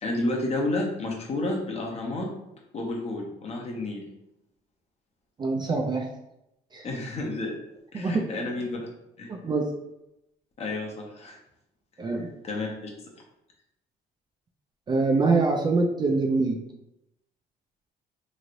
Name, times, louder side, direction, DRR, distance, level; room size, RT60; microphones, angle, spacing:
voice 1, 0.0-2.3 2.7-4.0 6.8-7.5 7.9-8.9 9.2-9.3 10.6-11.4 12.4-12.9, left 2 dB, 40° left, 0 dB, 0.7 m, -30 dB
voice 2, 5.4-6.1 6.7-6.9 7.9-8.3 9.3-9.7 12.0-12.3 14.9-16.6, right 3 dB, 25° right, 2 dB, 0.4 m, -24 dB
3.1 x 2.7 x 2.5 m, 0.87 s
cardioid pair, 110°, 17 cm